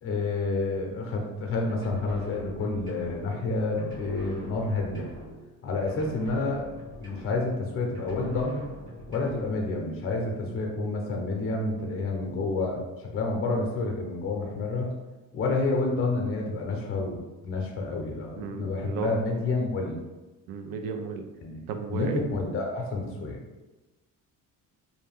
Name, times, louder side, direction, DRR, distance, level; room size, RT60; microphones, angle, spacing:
voice 1, 0.0-5.1 5.6-6.7 7.0-8.7 9.1-14.9 15.3-20.0 21.4-21.6 21.9-23.4, left 3 dB, 40° left, 1 dB, 0.6 m, -29 dB
sound 1, 1.7-3.5 3.8-5.6 5.9-7.7 7.9-9.6, equal, 35° right, 1.1 m, -44 dB
voice 2, 18.4-19.2 20.5-21.2 21.7-22.2, right 5 dB, 85° right, 6 dB, 0.5 m, -34 dB
2.6 x 2.1 x 3.3 m, 1.1 s
cardioid pair, 155°, 34 cm